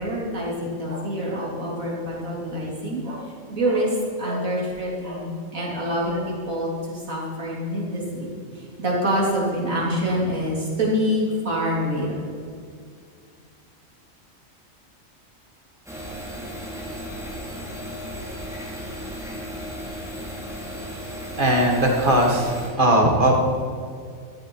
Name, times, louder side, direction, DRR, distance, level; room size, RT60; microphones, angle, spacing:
voice 1, 0.0-3.2 3.5-12.2, equal, 80° right, -4 dB, 3.7 m, -26 dB
sound 1, 15.9-22.7, equal, ahead, 2.6 m, -35 dB
voice 2, 21.4-23.3, right 1 dB, 40° right, 0 dB, 2.1 m, -19 dB
14.5 x 13.0 x 4.8 m, 2.2 s
omnidirectional pair, 1.4 m